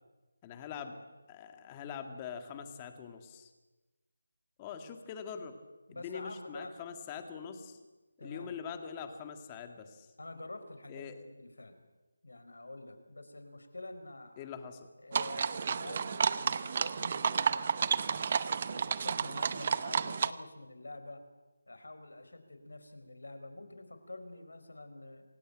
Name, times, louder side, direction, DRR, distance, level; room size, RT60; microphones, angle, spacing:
voice 1, 0.4-1.0 1.3-3.5 4.6-5.5 5.9-7.8 8.2-10.1 10.9-11.2 14.4-14.9, left 7 dB, 15° left, 7 dB, 2.0 m, -43 dB
voice 2, 5.9-6.8 8.2-8.5 10.2-11.1 11.4-11.9 12.2-14.5 15.0-18.4 18.6-21.2 21.7-25.2, left 2 dB, 85° left, 9 dB, 4.8 m, -47 dB
sound 1, 15.1-20.3, right 6 dB, 35° right, 0.8 m, -31 dB
27.0 x 17.0 x 9.0 m, 1.2 s
figure-of-eight pair, 170°, 0 cm